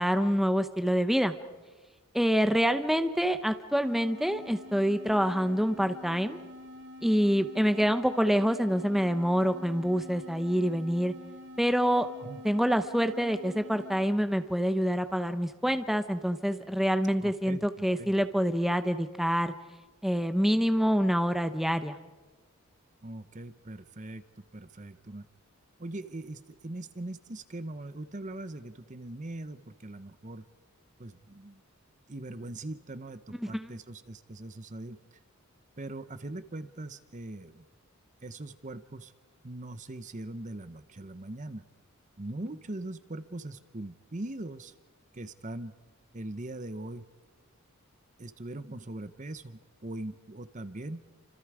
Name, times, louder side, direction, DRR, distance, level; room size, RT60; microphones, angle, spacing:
voice 1, 0.0-1.3 2.1-6.4 7.0-11.1 11.6-12.1 12.4-19.5 20.0-22.0 33.3-33.7, equal, ahead, 9 dB, 0.8 m, -26 dB
sound 1, 3.8-14.2, left 1 dB, 55° right, 1.6 m, -47 dB
voice 2, 17.2-18.1 23.0-24.2 24.5-25.3 25.8-30.4 31.0-31.6 32.1-35.0 35.8-37.6 38.2-39.1 39.4-41.6 42.2-44.7 45.1-45.7 46.1-47.1 48.2-51.0, right 2 dB, 35° right, 12 dB, 0.8 m, -41 dB
29.0 x 26.0 x 4.9 m, 1.2 s
head